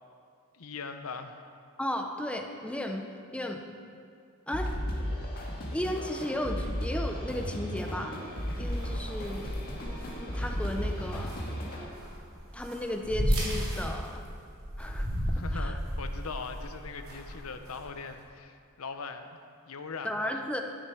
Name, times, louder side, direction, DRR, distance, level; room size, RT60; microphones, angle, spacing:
voice 1, 0.5-1.4 15.3-19.4 19.7-20.4, left 4 dB, 75° left, 8 dB, 0.8 m, -40 dB
voice 2, 1.8-3.0 3.3-3.6 4.5-4.7 5.7-8.2 8.5-9.5 10.2-11.3 12.5-14.2 14.8-15.8 20.0-20.6, left 1 dB, 5° left, 4 dB, 0.7 m, -34 dB
sound 1, 4.5-11.9, equal, 45° left, 2.0 m, -34 dB
sound 2, 8.3-18.1, equal, 75° right, 3.6 m, -34 dB
13.5 x 9.6 x 4.6 m, 2.3 s
head